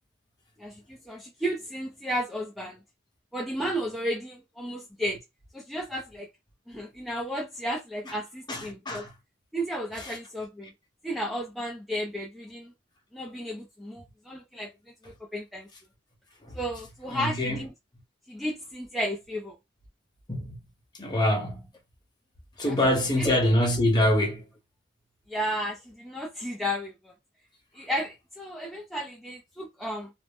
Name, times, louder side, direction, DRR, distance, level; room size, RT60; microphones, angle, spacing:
voice 1, 0.6-2.8 3.3-5.2 5.5-6.3 6.7-9.1 9.5-10.7 11.0-12.7 13.1-14.7 15.0-15.7 16.5-17.7 18.3-19.6 22.6-23.3 25.3-27.1 27.7-30.1, equal, ahead, 0.4 m, -33 dB
voice 2, 17.1-17.6 20.3-20.5 21.0-21.6 22.6-24.4, left 1 dB, 25° left, 0.8 m, -24 dB
2.5 x 2.0 x 3.4 m
head